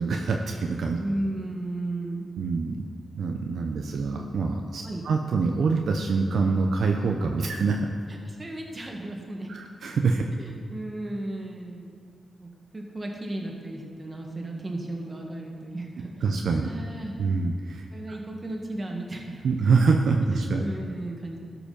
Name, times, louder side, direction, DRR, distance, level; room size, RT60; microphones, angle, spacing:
voice 1, 0.0-1.0 2.4-2.8 3.2-7.9 9.5-10.2 16.2-16.7 17.2-18.2 19.4-20.6, right 4 dB, 75° right, 3 dB, 0.6 m, -25 dB
voice 2, 1.0-2.3 4.8-5.0 8.1-9.5 10.4-12.0 12.2-16.1 16.6-17.1 17.9-19.5 20.3-21.4, right 1 dB, 35° right, 0 dB, 1.9 m, -35 dB
12.5 x 5.0 x 5.2 m, 2.2 s
supercardioid pair, 45°, 0 cm